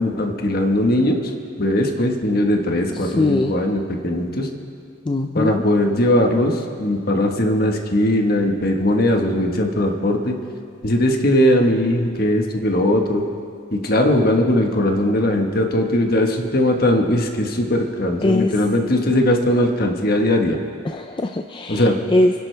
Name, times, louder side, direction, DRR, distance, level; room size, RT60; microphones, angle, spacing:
voice 1, 0.0-1.3 1.6-4.5 5.3-10.4 10.8-13.2 13.7-20.6 21.7-22.0, left 1 dB, 50° left, 3 dB, 1.4 m, -19 dB
voice 2, 3.0-3.5 5.1-5.6 18.2-18.5 20.8-22.3, left 2 dB, 25° left, 6 dB, 0.4 m, -21 dB
28.0 x 11.5 x 3.4 m, 2.3 s
head